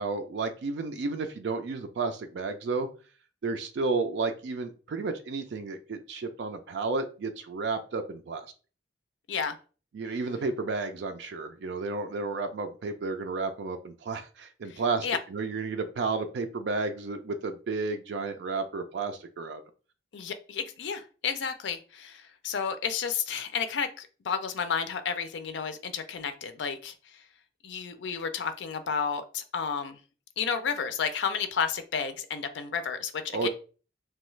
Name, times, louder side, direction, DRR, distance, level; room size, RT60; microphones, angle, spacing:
voice 1, 0.0-2.9 3.4-8.5 9.9-19.6 33.3-33.5, right 3 dB, 70° right, 7 dB, 0.4 m, -32 dB
voice 2, 14.7-15.2 20.1-27.2 27.6-30.0 30.4-33.5, left 6 dB, 80° left, 9 dB, 0.4 m, -32 dB
3.0 x 2.3 x 3.1 m, 0.37 s
head